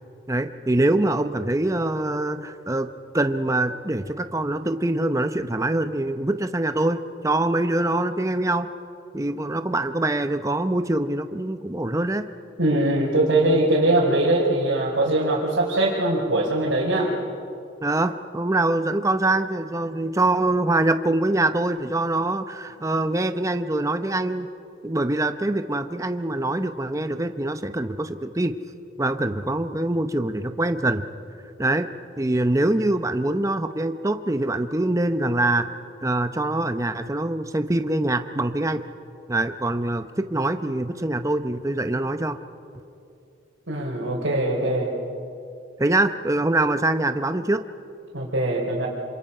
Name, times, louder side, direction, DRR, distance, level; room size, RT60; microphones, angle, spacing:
voice 1, 0.3-8.7 9.1-12.3 17.8-24.5 24.8-28.5 29.0-31.1 31.6-31.9 32.2-35.7 36.0-38.9 39.3-42.4 45.8-47.6, right 2 dB, 15° right, 8 dB, 0.7 m, -24 dB
voice 2, 12.6-17.1 43.7-44.9 48.1-48.9, right 1 dB, 80° right, -6 dB, 3.8 m, -21 dB
27.0 x 26.0 x 5.5 m, 2.7 s
head